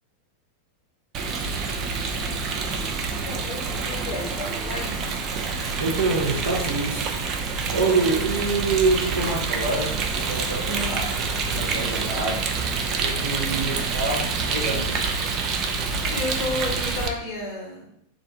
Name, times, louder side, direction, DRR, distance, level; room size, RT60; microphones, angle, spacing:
Rain, 1.1-17.1, right 4 dB, 35° right, 0.4 m, -27 dB
voice 1, 3.2-5.0 7.7-8.1 9.1-9.2 10.6-11.1 13.7-13.9 15.9-17.9, left 2 dB, 25° left, -3 dB, 0.9 m, -32 dB
voice 2, 5.8-11.1 11.5-12.6 13.0-15.0, right 3 dB, 65° right, -3 dB, 0.8 m, -26 dB
3.2 x 2.5 x 3.6 m, 0.73 s
figure-of-eight pair, 90°, 0 cm